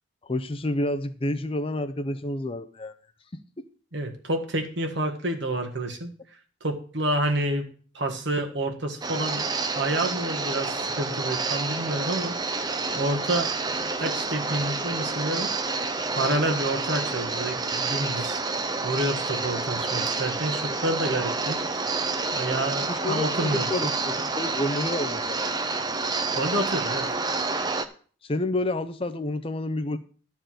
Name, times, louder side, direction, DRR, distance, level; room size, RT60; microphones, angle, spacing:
voice 1, 0.2-3.0 3.3-3.6 22.9-25.5 28.2-30.0, left 1 dB, 25° left, 10 dB, 0.5 m, -29 dB
voice 2, 3.9-6.1 6.6-7.7 7.9-9.4 9.7-12.7 12.9-13.5 13.9-15.5 16.1-21.9 22.3-23.9 26.4-27.1, right 1 dB, 60° right, 4 dB, 1.6 m, -29 dB
sound 1, 9.0-27.9, right 3 dB, 20° right, 0.6 m, -29 dB
12.0 x 4.6 x 7.7 m, 0.43 s
head